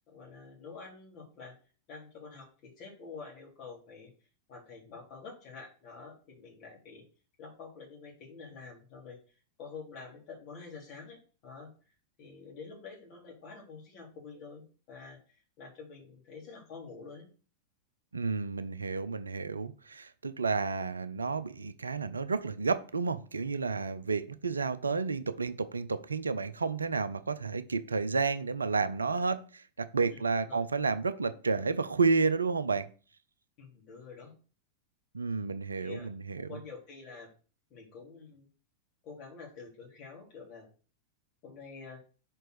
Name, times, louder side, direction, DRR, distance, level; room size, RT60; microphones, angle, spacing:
voice 1, 0.1-1.5 1.9-4.1 4.5-7.0 7.4-9.2 9.6-11.7 12.2-15.2 15.6-17.3 30.1-30.7 33.6-34.3 35.7-36.1 36.4-37.3 37.7-38.5 39.0-40.7 41.4-42.0, left 4 dB, 40° left, 3.1 m, -48 dB
voice 2, 18.1-32.8 35.1-36.6, right 4 dB, 75° right, 0.4 m, -31 dB
5.2 x 4.5 x 4.8 m
figure-of-eight pair, 90°, 0 cm